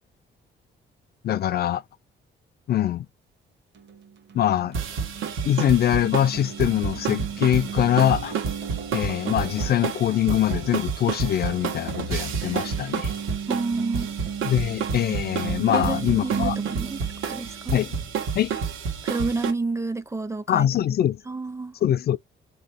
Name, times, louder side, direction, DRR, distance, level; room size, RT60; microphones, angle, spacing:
voice 1, 1.2-1.8 2.7-3.1 4.3-4.8 5.5-8.4 8.9-13.1 14.4-16.6 17.7-18.0 18.3-18.5 20.5-21.2 21.8-22.2, left 11 dB, 55° left, 0.4 m, -23 dB
sound 1, 3.7-17.9, right 7 dB, 60° right, 1.2 m, -36 dB
sound 2, 4.7-19.5, right 6 dB, 90° right, 1.4 m, -30 dB
voice 2, 13.5-14.1 15.7-17.0 17.3-17.8 19.0-20.9 21.3-21.7, right 3 dB, 15° right, 0.5 m, -29 dB
3.3 x 3.0 x 2.8 m
cardioid pair, 90°, 20 cm